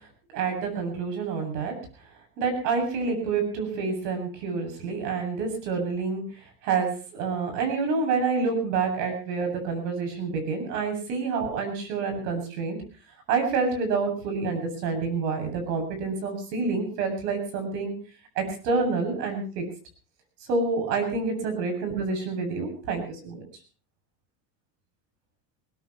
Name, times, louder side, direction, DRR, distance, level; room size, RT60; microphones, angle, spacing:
voice 1, 0.3-1.7 2.4-6.2 6.6-12.8 13.3-17.9 18.4-19.7 20.5-23.5, right 4 dB, 85° right, 6 dB, 7.9 m, -28 dB
21.5 x 19.5 x 3.1 m, 0.37 s
supercardioid pair, 140°, 49 cm